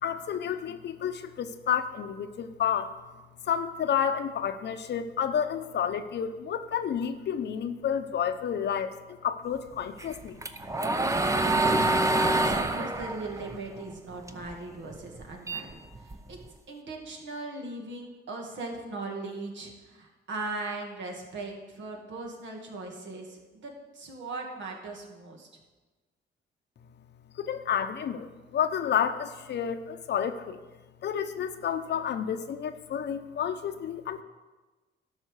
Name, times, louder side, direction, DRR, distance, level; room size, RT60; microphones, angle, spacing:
voice 1, 0.0-2.9 3.4-10.4 27.3-30.6 31.0-34.2, left 8 dB, 60° left, 9 dB, 0.8 m, -30 dB
sound 1, 10.0-14.5 14.9-16.4, right 2 dB, 15° right, 0.7 m, -26 dB
voice 2, 12.1-15.7 16.0-16.4 16.7-25.5, right 3 dB, 65° right, 1 dB, 2.3 m, -39 dB
12.0 x 5.8 x 6.5 m, 1.2 s
cardioid pair, 90°, 20 cm